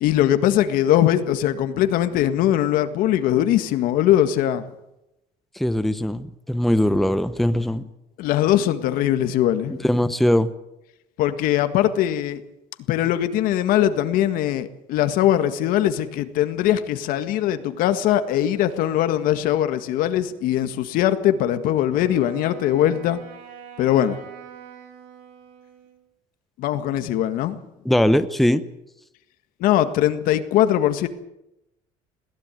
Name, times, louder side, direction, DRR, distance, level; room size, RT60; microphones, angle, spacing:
voice 1, 0.0-4.6 8.2-9.9 11.2-12.4 12.9-23.2 23.8-24.2 26.6-27.6 29.6-31.1, left 12 dB, 70° left, 10 dB, 1.8 m, -21 dB
voice 2, 5.6-7.9 9.8-10.5 27.8-28.6, left 1 dB, ahead, 11 dB, 0.9 m, -20 dB
Wind instrument woodwind instrument, 21.9-26.0, right 8 dB, 75° right, 3.7 m, -44 dB
21.5 x 15.5 x 9.2 m, 0.90 s
cardioid pair, 130°, 15 cm